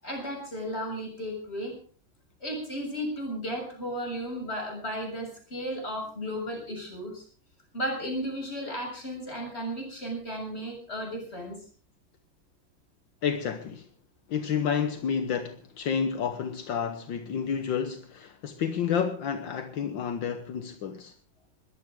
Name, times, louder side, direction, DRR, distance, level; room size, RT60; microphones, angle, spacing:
voice 1, 0.0-1.8 2.4-7.2 7.7-11.6, equal, 30° left, 7.5 m, -34 dB
voice 2, 13.2-13.9 14.3-21.1, left 7 dB, 75° left, 1.8 m, -30 dB
21.0 x 15.5 x 3.7 m
omnidirectional pair, 2.1 m